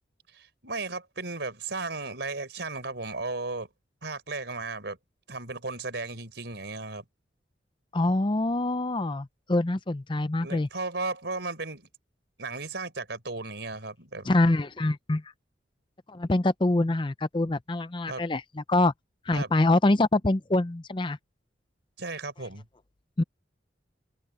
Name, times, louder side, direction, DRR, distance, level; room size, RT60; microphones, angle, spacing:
voice 1, 0.3-3.7 4.0-5.0 5.3-7.0 10.4-11.9 12.4-14.3 18.1-18.2 19.3-19.5 22.0-22.7, right 3 dB, 70° right, 4.4 m, -35 dB
voice 2, 7.9-10.7 14.3-15.2 16.1-18.9 19.3-21.2 23.2-23.3, left 2 dB, 25° left, 0.6 m, -25 dB
open air
head